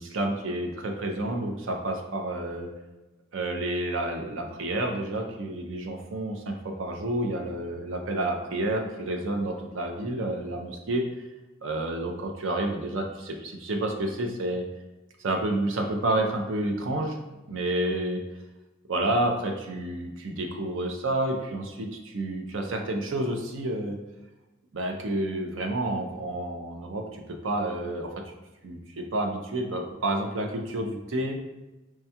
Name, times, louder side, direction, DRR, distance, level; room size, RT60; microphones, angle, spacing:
voice 1, 0.0-2.7 3.3-11.1 11.6-14.7 15.2-17.2 17.5-18.2 18.9-24.0 24.7-28.3 28.6-31.4, right 1 dB, 75° right, 3 dB, 0.6 m, -29 dB
4.6 x 2.3 x 2.7 m, 1.1 s
head